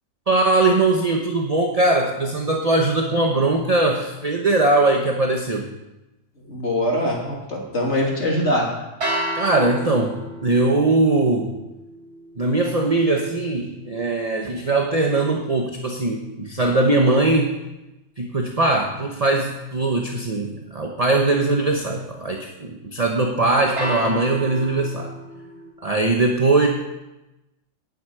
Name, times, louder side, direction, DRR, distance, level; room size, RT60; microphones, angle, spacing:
voice 1, 0.3-5.7 9.3-11.5 12.4-17.6 18.2-25.1 25.8-26.7, right 2 dB, 30° right, 1 dB, 1.1 m, -20 dB
voice 2, 6.5-8.7, left 1 dB, 55° left, -2 dB, 3.3 m, -23 dB
sound 1, 9.0-15.1 23.8-25.7, right 1 dB, 55° right, 3.9 m, -33 dB
9.9 x 7.9 x 9.2 m, 0.99 s
omnidirectional pair, 1.4 m